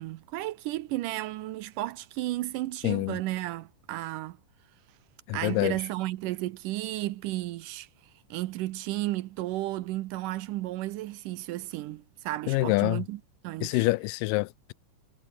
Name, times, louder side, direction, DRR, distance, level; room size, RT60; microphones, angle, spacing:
voice 1, 0.0-4.4 5.3-7.9 8.3-13.9, right 16 dB, 75° right, 2.2 m, -33 dB
voice 2, 2.8-3.2 5.3-5.8 12.5-13.0 13.6-14.7, left 21 dB, 85° left, 2.2 m, -26 dB
omnidirectional pair, 3.9 m